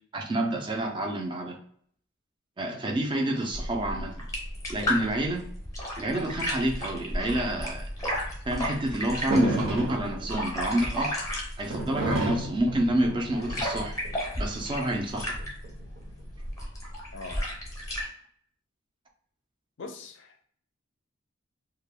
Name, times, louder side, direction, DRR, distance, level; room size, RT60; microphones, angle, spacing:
voice 1, 0.1-1.6 2.6-4.2 4.7-5.5 6.0-7.9 8.5-11.2 11.6-14.0 14.4-15.4, right 1 dB, 25° right, 3 dB, 0.3 m, -28 dB
sound 1, 3.5-18.1, left 1 dB, 15° left, 0.6 m, -34 dB
sound 2, 9.3-10.3 11.7-14.1 15.2-16.1, right 2 dB, 80° right, 0.7 m, -30 dB
voice 2, 19.8-20.4, left 3 dB, 60° left, 6 dB, 0.4 m, -41 dB
2.2 x 2.1 x 3.3 m, 0.62 s
head